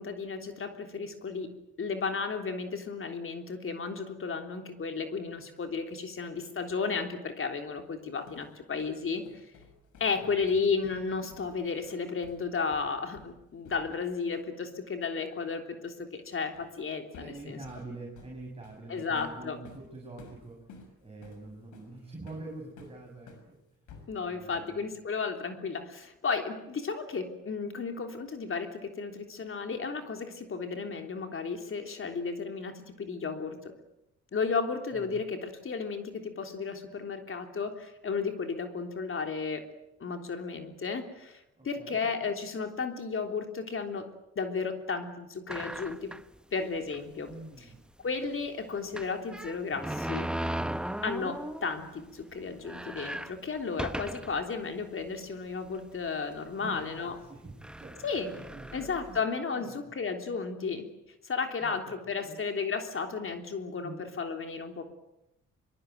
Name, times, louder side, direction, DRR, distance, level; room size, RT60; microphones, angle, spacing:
voice 1, 0.0-1.5 1.8-9.4 10.0-17.6 18.9-19.6 24.1-33.7 34.3-39.6 40.0-44.1 44.3-46.1 46.5-47.3 48.0-50.3 51.0-57.1 58.0-58.3 58.7-60.9 61.2-64.8, left 5 dB, 45° left, 5 dB, 3.4 m, -33 dB
sound 1, 7.9-14.1 14.4-14.6 16.5-16.8 17.1-23.5 23.9-24.8, left 4 dB, 80° left, 6.3 m, -54 dB
voice 2, 10.2-10.6 17.2-23.6 24.3-24.9 34.9-35.2 41.6-42.3 47.3-47.8 50.7-51.1 56.5-58.0 58.3-59.3 59.5-60.0 61.6-61.9 62.2-62.4 63.8-64.1, right 2 dB, 20° right, 0 dB, 6.4 m, -46 dB
sound 2, 45.5-46.3 46.9-47.0 47.3-47.4 48.9-51.8 52.2-52.3 52.6-54.4 55.1-55.2 56.1-56.3 57.2-57.3 57.6-59.2, right 1 dB, 5° right, 1.1 m, -37 dB
23.5 x 23.0 x 9.3 m, 0.86 s
cardioid pair, 90°, 30 cm